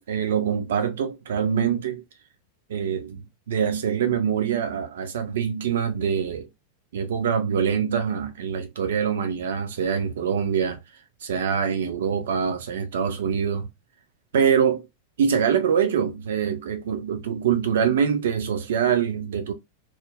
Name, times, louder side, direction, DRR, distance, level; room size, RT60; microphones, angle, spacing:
voice 1, 0.0-2.0 2.7-6.5 6.9-10.8 11.2-13.7 14.3-14.9 15.2-19.5, right 7 dB, 60° right, 0.4 m, -24 dB
2.3 x 2.1 x 3.3 m
figure-of-eight pair, 90°, 0 cm